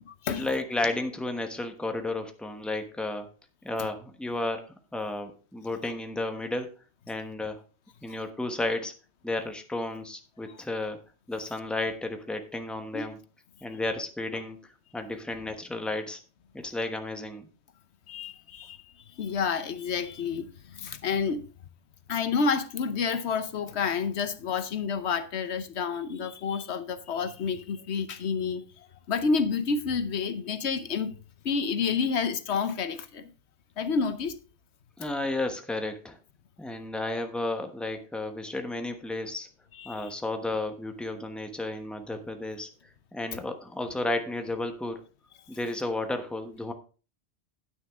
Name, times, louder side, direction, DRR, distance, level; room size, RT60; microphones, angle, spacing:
voice 1, 0.4-3.3 3.6-6.7 7.1-7.6 8.0-8.9 9.2-11.0 11.3-13.2 13.6-16.2 16.5-17.5 35.0-36.2 36.6-39.5 39.8-42.7 43.1-45.0 45.5-46.7, left 2 dB, ahead, 1.0 m, -32 dB
voice 2, 18.1-21.4 22.1-31.2 31.4-33.3 33.8-34.4 39.7-40.1, left 5 dB, 80° left, 1.1 m, -29 dB
9.6 x 9.4 x 3.6 m
omnidirectional pair, 1.1 m